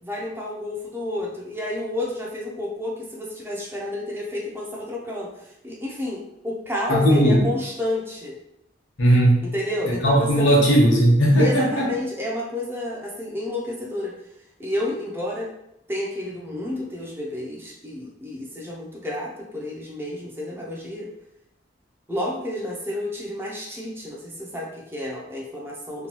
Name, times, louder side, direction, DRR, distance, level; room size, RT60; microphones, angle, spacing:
voice 1, 0.0-8.4 9.4-10.5 11.4-14.1 14.6-15.5 15.9-21.1 22.1-26.1, left 1 dB, 10° right, -3 dB, 0.4 m, -30 dB
voice 2, 6.9-7.4 9.0-9.4 10.0-11.9, equal, 80° left, -2 dB, 0.9 m, -17 dB
2.9 x 2.2 x 2.9 m, 0.81 s
head